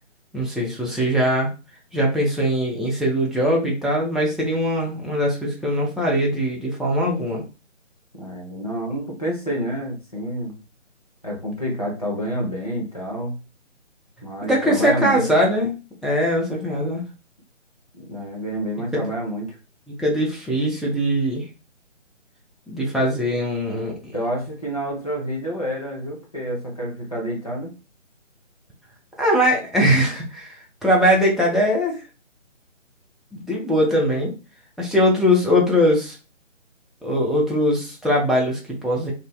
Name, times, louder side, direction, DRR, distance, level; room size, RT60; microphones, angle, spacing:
voice 1, 0.3-1.5 1.9-7.4 14.4-15.7 16.0-17.0 18.9-19.0 20.0-21.5 22.7-23.9 29.2-30.5 30.8-32.0 33.3-34.3 34.8-36.2 37.0-39.1, equal, ahead, -3 dB, 0.4 m, -21 dB
voice 2, 8.1-10.6 11.2-13.4 14.2-15.2 17.9-19.6 24.1-27.7, equal, 30° left, -3 dB, 0.7 m, -28 dB
2.5 x 2.3 x 3.0 m, 0.31 s
hypercardioid pair, 180°, 38 cm